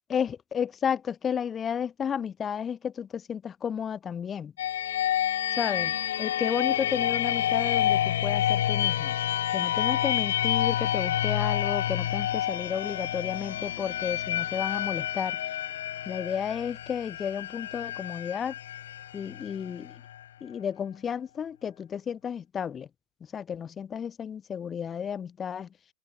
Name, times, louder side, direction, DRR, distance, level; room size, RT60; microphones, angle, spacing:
voice 1, 0.1-4.5 5.6-9.1 9.5-15.4 16.1-18.5 19.1-19.9 20.4-22.9 23.3-25.7, left 8 dB, 20° left, 0.8 m, -32 dB
sound 1, 4.6-20.2, left 11 dB, 60° left, 1.3 m, -29 dB
figure-of-eight pair, 90°, 0 cm